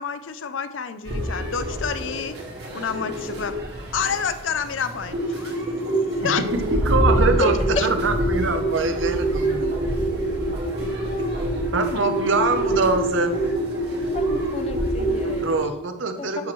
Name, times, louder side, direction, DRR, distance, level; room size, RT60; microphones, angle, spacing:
voice 1, 0.0-2.4 2.7-3.5 3.9-5.6 6.0-6.4 7.8-7.9, left 6 dB, 85° left, 10 dB, 0.5 m, -28 dB
sound 1, 1.0-15.6, right 1 dB, 55° right, 1.9 m, -25 dB
voice 2, 6.2-7.5 7.8-9.7 11.7-13.3 15.2-16.5, right 3 dB, 85° right, 7 dB, 0.8 m, -24 dB
voice 3, 11.0-11.6 14.1-15.5 16.2-16.5, left 2 dB, 30° left, 8 dB, 0.5 m, -32 dB
8.3 x 6.0 x 3.2 m, 0.92 s
head